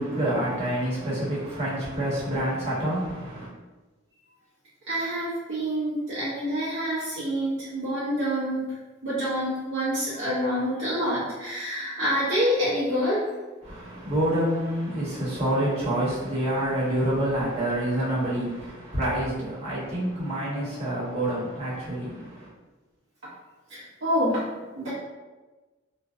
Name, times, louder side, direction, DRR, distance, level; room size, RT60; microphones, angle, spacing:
voice 1, 0.0-3.5 13.6-22.5, right 1 dB, 35° right, -9 dB, 1.0 m, -27 dB
voice 2, 4.9-8.8 9.0-13.3 23.7-24.9, equal, 75° right, -9 dB, 0.6 m, -27 dB
2.5 x 2.1 x 2.4 m, 1.2 s
head